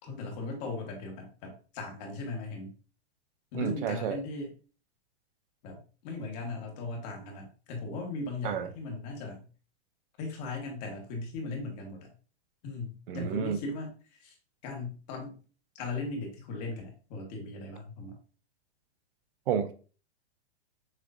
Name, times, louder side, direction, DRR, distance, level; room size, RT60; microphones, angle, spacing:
voice 1, 0.0-2.7 3.5-4.5 5.6-9.4 10.2-12.1 12.6-14.3 14.6-15.4 15.7-18.2, left 3 dB, 40° left, 1.4 m, -38 dB
voice 2, 3.5-4.2 8.4-8.7 13.1-13.6 19.5-19.7, right 8 dB, 55° right, 0.6 m, -30 dB
6.4 x 2.5 x 2.5 m
supercardioid pair, 155°, 33 cm